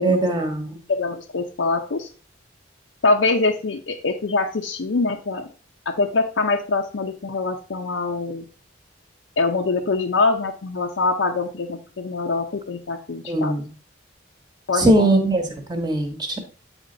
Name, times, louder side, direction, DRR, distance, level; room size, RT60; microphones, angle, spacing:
voice 1, 0.0-0.8 13.3-13.7 14.8-15.4 15.7-16.4, right 1 dB, 20° right, 5 dB, 1.1 m, -20 dB
voice 2, 0.9-2.1 3.0-5.5 5.9-8.4 9.4-13.5 14.7-15.2, left 3 dB, 75° left, 3 dB, 0.6 m, -24 dB
8.2 x 4.3 x 3.8 m, 0.37 s
head